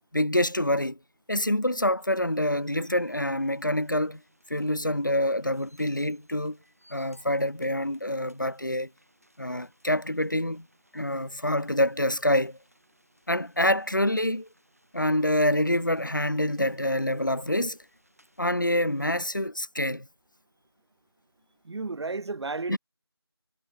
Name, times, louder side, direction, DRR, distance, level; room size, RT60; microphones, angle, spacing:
voice 1, 0.1-1.0 1.3-4.2 4.5-6.6 6.9-8.9 9.4-10.7 10.9-12.6 13.3-14.5 14.9-17.8 18.4-20.1 22.7-22.8, left 1 dB, 50° left, 0.6 m, -26 dB
sound 1, 2.0-19.3, right 1 dB, 35° right, 6.3 m, -64 dB
voice 2, 21.6-22.8, right 3 dB, 85° right, 0.4 m, -32 dB
figure-of-eight pair, 180°, 14 cm